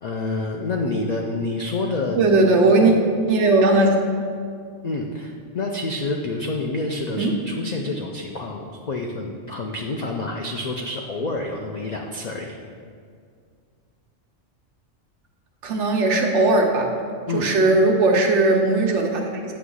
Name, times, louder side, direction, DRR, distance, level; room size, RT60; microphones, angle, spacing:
voice 1, 0.0-2.3 2.6-3.0 4.8-12.6 17.3-17.5, left 2 dB, 75° left, 1 dB, 0.3 m, -28 dB
voice 2, 2.1-2.9 3.3-4.0 7.2-7.4 15.6-16.9 17.3-19.5, right 2 dB, 70° right, 2 dB, 1.1 m, -18 dB
8.0 x 3.0 x 6.2 m, 2.2 s
omnidirectional pair, 1.3 m